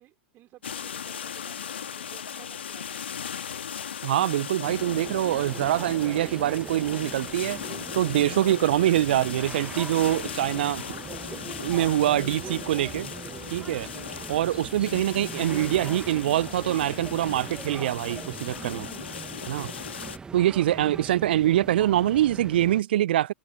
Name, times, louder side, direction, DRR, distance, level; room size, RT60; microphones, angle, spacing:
voice 1, 0.0-3.7, right 15 dB, 35° right, 3.4 m, -55 dB
sound 1, 0.6-20.2, left 8 dB, 70° left, 2.2 m, -38 dB
voice 2, 4.0-7.6 7.9-10.8 11.6-13.1 13.5-13.9 14.3-18.9 19.5-19.7 20.3-23.3, right 13 dB, 60° right, 0.7 m, -24 dB
sound 2, 4.6-22.8, right 5 dB, 15° right, 1.2 m, -41 dB
sound 3, 7.5-7.9 9.9-10.9 12.8-13.8 15.8-16.7 18.7-19.1, right 5 dB, 80° right, 4.5 m, -56 dB
open air
figure-of-eight pair, 100°, 6 cm